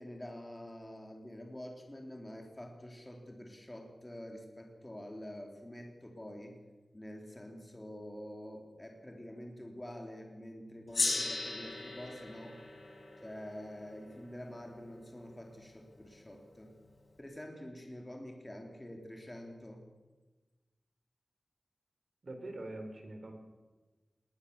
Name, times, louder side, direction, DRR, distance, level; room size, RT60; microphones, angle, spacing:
voice 1, 0.0-6.6 6.9-12.6 13.2-16.7 17.2-19.8, left 1 dB, 20° left, 2 dB, 3.7 m, -47 dB
Gong, 10.9-15.7, left 3 dB, 65° left, 4.8 m, -38 dB
voice 2, 22.2-23.3, right 2 dB, 55° right, 5 dB, 4.7 m, -43 dB
20.5 x 18.0 x 7.2 m, 1.2 s
wide cardioid pair, 65°, 0 cm